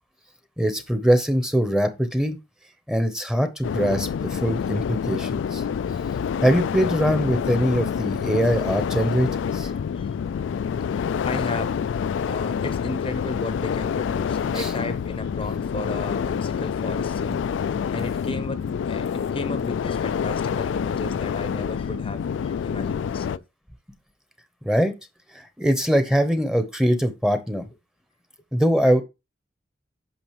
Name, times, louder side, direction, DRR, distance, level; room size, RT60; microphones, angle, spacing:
voice 1, 0.6-2.4 2.9-5.6 6.4-9.7 14.5-14.7 24.6-24.9 25.6-27.7 28.5-29.0, equal, 5° right, 0.8 m, -22 dB
sound 1, 3.6-23.4, left 7 dB, 75° left, 0.3 m, -27 dB
voice 2, 9.6-10.5 10.9-11.8 12.3-17.5 17.8-23.4, left 2 dB, 30° left, 0.7 m, -35 dB
8.8 x 6.1 x 3.0 m
head